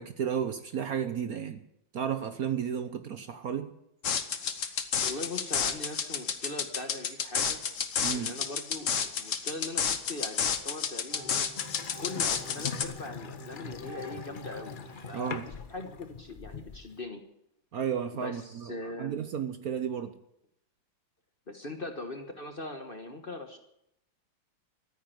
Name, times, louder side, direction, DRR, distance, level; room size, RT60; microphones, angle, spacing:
voice 1, 0.0-1.7 1.9-3.7 8.0-8.3 15.1-15.5 17.7-20.1, right 8 dB, 60° right, 10 dB, 1.2 m, -33 dB
sound 1, 4.0-12.9, left 7 dB, 50° left, 1.3 m, -30 dB
voice 2, 5.0-7.6 8.1-11.4 12.0-14.8 15.1-15.4 15.7-17.2 18.1-19.1 21.5-23.6, left 2 dB, 35° left, 6 dB, 1.3 m, -40 dB
sound 2, 10.4-15.4, equal, 10° left, 4.3 m, -48 dB
Water tap faucet / Sink (filling or washing) / Bathtub (filling or washing), 11.6-17.0, left 6 dB, 80° left, 0.4 m, -42 dB
13.5 x 9.6 x 9.1 m, 0.78 s
omnidirectional pair, 2.1 m